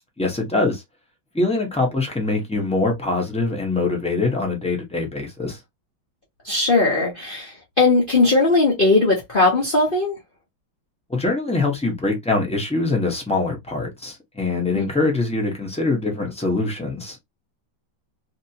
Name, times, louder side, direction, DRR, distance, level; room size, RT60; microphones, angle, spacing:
voice 1, 0.2-0.8 1.3-5.6 11.1-17.2, left 3 dB, 5° left, 0.6 m, -23 dB
voice 2, 6.4-10.2 14.8-14.9, left 3 dB, 40° left, 0.8 m, -18 dB
2.9 x 2.9 x 2.8 m
omnidirectional pair, 2.1 m